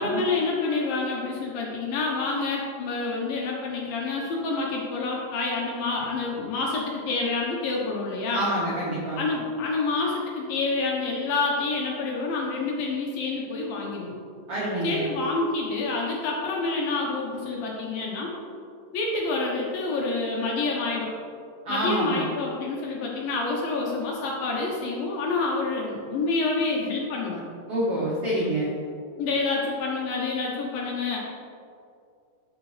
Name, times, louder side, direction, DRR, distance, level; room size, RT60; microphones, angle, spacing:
voice 1, 0.0-8.5 9.2-14.2 14.8-18.3 18.9-21.1 21.7-27.4 29.2-31.2, left 3 dB, 70° left, -2 dB, 2.3 m, -28 dB
voice 2, 8.3-9.2 14.5-15.1 21.6-22.2 27.7-28.7, right 1 dB, 90° right, -7 dB, 1.2 m, -27 dB
12.5 x 6.0 x 3.2 m, 2.4 s
omnidirectional pair, 5.0 m